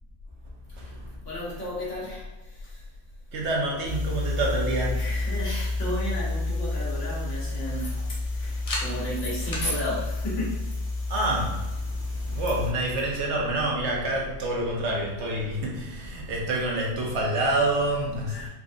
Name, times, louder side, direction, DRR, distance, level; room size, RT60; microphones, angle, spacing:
voice 1, 0.7-1.1 3.3-5.4 11.1-18.5, right 1 dB, 70° right, -2 dB, 1.0 m, -28 dB
voice 2, 1.2-2.8 4.9-10.5 18.3-18.5, left 1 dB, 75° left, -7 dB, 1.6 m, -33 dB
sound 1, 3.9-12.7, left 2 dB, 40° left, 0.5 m, -30 dB
3.9 x 2.5 x 2.5 m, 1.0 s
omnidirectional pair, 1.3 m